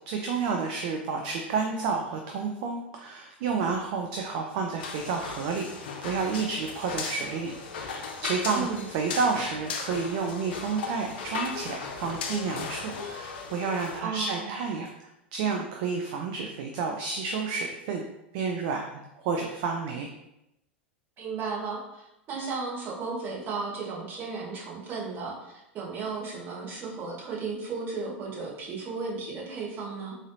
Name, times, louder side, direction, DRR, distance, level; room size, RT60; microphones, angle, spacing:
voice 1, 0.1-18.0 18.3-20.1, right 5 dB, 50° right, 2 dB, 0.4 m, -30 dB
sound 1, 4.8-14.0, left 5 dB, 60° left, 0.5 m, -37 dB
voice 2, 8.5-8.8 14.0-14.5 21.2-30.2, right 4 dB, 35° right, -4 dB, 1.3 m, -34 dB
3.7 x 3.2 x 2.6 m, 0.88 s
figure-of-eight pair, 85°, 6 cm